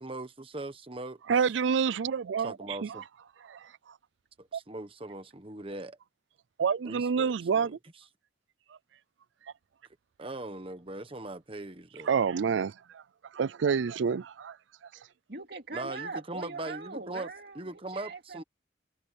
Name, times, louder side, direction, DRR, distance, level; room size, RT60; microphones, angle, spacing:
voice 1, 0.0-1.2 2.4-3.0 4.4-6.0 6.8-7.7 10.2-12.1 15.7-17.3 17.5-18.4, right 2 dB, 30° right, 1.4 m, -40 dB
voice 2, 1.3-3.0 3.5-3.7 4.5-4.6 6.6-7.8 12.0-13.0 13.3-14.6, right 6 dB, 85° right, 0.4 m, -28 dB
voice 3, 14.9-18.4, right 3 dB, 60° right, 2.5 m, -42 dB
head